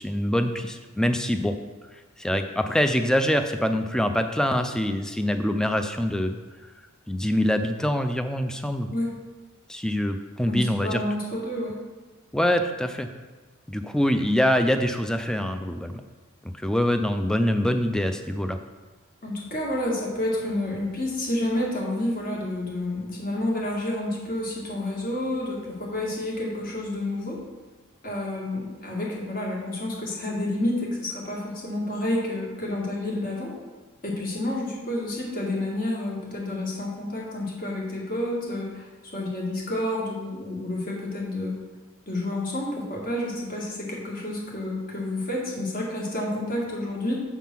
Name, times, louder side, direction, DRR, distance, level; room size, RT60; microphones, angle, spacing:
voice 1, 0.0-1.5 2.2-6.4 7.1-8.9 9.7-11.0 12.3-13.1 13.7-16.0 16.4-18.6, equal, 5° left, 7 dB, 0.3 m, -24 dB
voice 2, 10.5-11.8 19.2-27.4 28.0-33.6 34.0-41.6 42.1-47.2, left 1 dB, 45° left, -3 dB, 1.7 m, -29 dB
7.2 x 3.7 x 5.9 m, 1.3 s
head